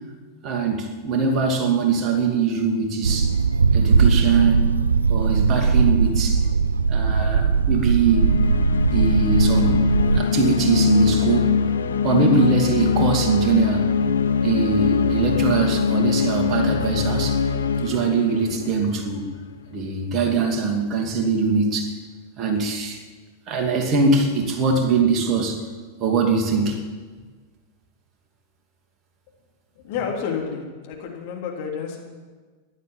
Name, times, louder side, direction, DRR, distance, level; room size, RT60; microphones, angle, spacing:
voice 1, 0.4-3.3 3.7-4.7 5.1-6.5 6.9-8.4 8.9-9.8 10.1-11.6 12.0-13.9 14.4-17.4 17.8-19.2 19.7-21.9 22.4-23.0 23.5-25.6 26.0-26.8, right 4 dB, 35° right, 4 dB, 2.5 m, -22 dB
sound 1, 3.0-10.2, right 5 dB, 75° right, 0.4 m, -19 dB
sound 2, 8.0-19.5, left 6 dB, 70° left, 0.7 m, -22 dB
voice 2, 29.8-32.0, left 6 dB, 50° left, 0 dB, 3.3 m, -30 dB
15.0 x 11.0 x 7.5 m, 1.4 s
figure-of-eight pair, 90°, 0 cm